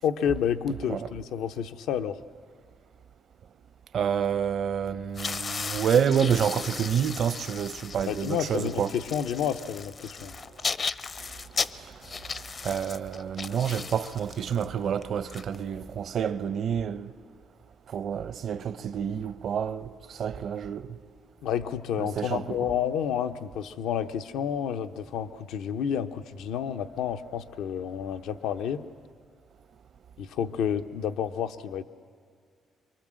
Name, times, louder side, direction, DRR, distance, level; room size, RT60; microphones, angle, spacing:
voice 1, 0.0-2.2 8.0-10.3 21.4-28.8 30.2-31.8, left 8 dB, 85° left, 0.8 m, -30 dB
voice 2, 3.9-9.0 12.6-17.1 17.9-20.9 22.0-22.6, right 8 dB, 60° right, 0.8 m, -28 dB
sound 1, 5.1-16.1, left 5 dB, 40° left, 0.6 m, -36 dB
24.5 x 23.5 x 7.6 m
cardioid pair, 90°, 0 cm